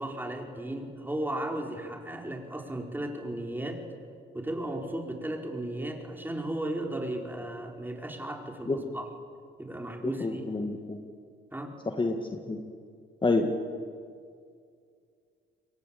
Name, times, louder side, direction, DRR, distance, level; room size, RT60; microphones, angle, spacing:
voice 1, 0.0-3.8 4.3-9.1 9.6-10.4 11.5-11.8, right 1 dB, 10° right, 2 dB, 4.8 m, -35 dB
voice 2, 10.2-11.0 12.0-12.6 13.2-13.5, left 3 dB, 25° left, 4 dB, 2.1 m, -28 dB
28.0 x 23.0 x 8.7 m, 2.2 s
cardioid pair, 90°, 20 cm